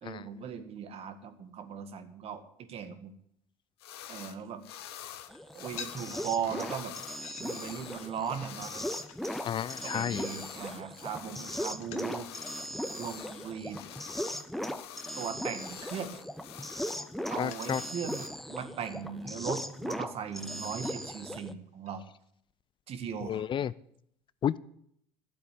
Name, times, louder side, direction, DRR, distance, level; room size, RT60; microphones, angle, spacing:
voice 1, 0.0-3.1 4.1-4.6 5.5-6.9 7.4-8.9 9.8-12.3 13.0-13.8 15.2-16.2 17.3-22.1 22.9-23.5, right 7 dB, 50° right, 8 dB, 1.8 m, -38 dB
sound 1, 3.8-4.4 4.6-18.3, left 11 dB, 80° left, 1.0 m, -47 dB
sound 2, 5.2-21.9, left 8 dB, 65° left, 1.2 m, -55 dB
sound 3, 5.3-21.5, equal, ahead, 0.9 m, -38 dB
voice 2, 9.4-10.3 17.0-17.8 23.3-23.7 24.4-24.6, left 9 dB, 40° left, 19 dB, 0.5 m, -32 dB
12.0 x 7.9 x 8.4 m, 0.70 s
hypercardioid pair, 70°, 13 cm